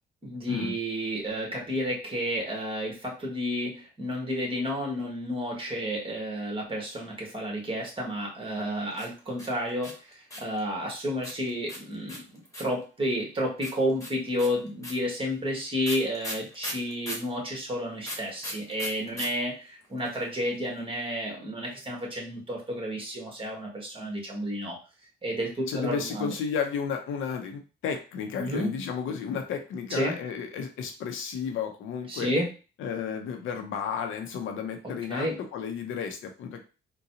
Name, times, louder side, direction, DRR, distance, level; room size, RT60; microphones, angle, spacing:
voice 1, 0.2-9.9 10.4-24.8 25.2-26.3 28.4-28.7 29.9-30.2 32.1-32.5 34.8-35.4, equal, 25° right, -1 dB, 1.5 m, -31 dB
sound 1, 8.9-10.6 11.2-12.8 13.6-17.3 18.0-19.3 19.5-19.6 19.8-20.3, left 1 dB, 15° left, 1.4 m, -38 dB
voice 2, 25.7-32.3 32.8-35.3 35.5-36.6, left 6 dB, 80° left, 4 dB, 0.7 m, -32 dB
3.9 x 2.2 x 2.8 m, 0.33 s
cardioid pair, 90°, 20 cm